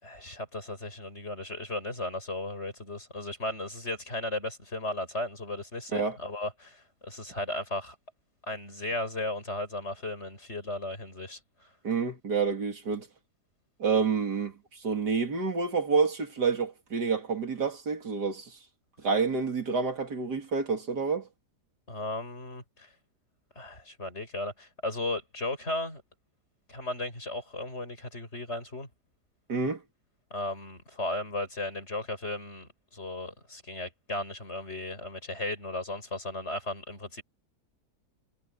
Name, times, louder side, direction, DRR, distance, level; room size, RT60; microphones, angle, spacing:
voice 1, 0.0-8.0 8.5-11.4 21.9-22.9 23.6-26.0 26.7-28.9 30.3-37.2, left 2 dB, 40° left, 7.5 m, -35 dB
voice 2, 11.8-13.1 13.8-14.5 14.8-18.5 19.0-21.3 29.5-29.8, right 5 dB, 80° right, 3.4 m, -28 dB
omnidirectional pair, 1.7 m